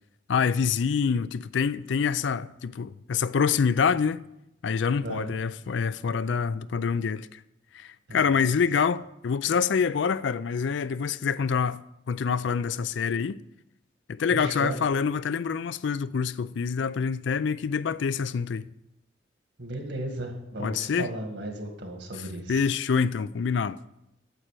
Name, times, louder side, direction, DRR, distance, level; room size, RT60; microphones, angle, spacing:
voice 1, 0.3-4.2 4.6-7.4 7.7-11.8 12.1-13.4 14.1-18.7 20.6-21.1 22.5-23.8, left 6 dB, 75° left, 0.4 m, -26 dB
voice 2, 5.0-5.3 8.1-8.5 14.3-14.8 19.6-22.7, right 1 dB, 70° right, 1.9 m, -35 dB
9.1 x 7.5 x 6.7 m
head